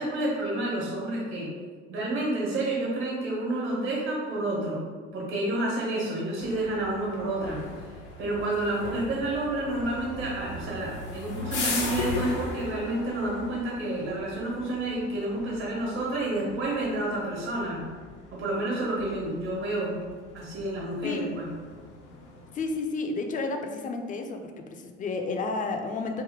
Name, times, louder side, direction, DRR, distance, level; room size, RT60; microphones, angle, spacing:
voice 1, 0.0-1.5 1.9-4.8 5.1-7.6 8.2-17.8 18.3-20.0 20.3-21.4, right 2 dB, 65° right, -4 dB, 1.4 m, -29 dB
sound 1, 6.4-22.7, left 3 dB, 75° left, 0.7 m, -38 dB
voice 2, 22.5-26.2, left 3 dB, 25° left, 4 dB, 0.4 m, -31 dB
3.2 x 2.7 x 3.5 m, 1.5 s
figure-of-eight pair, 55°, 35 cm